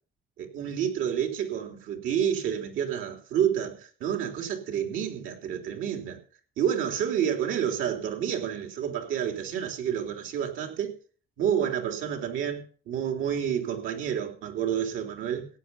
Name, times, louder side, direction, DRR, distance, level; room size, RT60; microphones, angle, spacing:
voice 1, 0.4-6.2 6.6-10.9 11.4-15.5, right 9 dB, 90° right, 3.6 m, -29 dB
16.5 x 9.5 x 5.6 m
cardioid pair, 90°, 20 cm